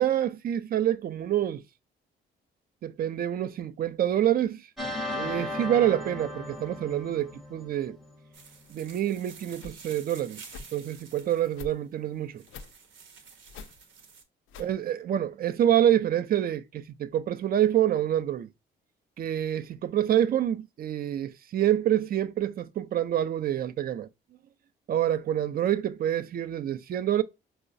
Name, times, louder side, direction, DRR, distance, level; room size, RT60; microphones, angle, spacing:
voice 1, 0.0-1.6 2.8-4.7 5.2-8.0 8.7-10.4 10.7-12.4 14.6-18.5 19.2-24.1 24.9-27.2, right 11 dB, 50° right, 0.4 m, -27 dB
sound 1, 4.8-8.2, left 1 dB, ahead, 0.7 m, -36 dB
sound 2, 8.3-14.2, right 5 dB, 75° right, 0.8 m, -50 dB
sound 3, 8.6-8.7 9.5-9.8 10.5-10.7 11.5-11.7 12.5-12.7 13.5-13.7 14.5-14.7, left 5 dB, 80° left, 0.4 m, -44 dB
4.6 x 2.0 x 2.5 m
cardioid pair, 90°, 20 cm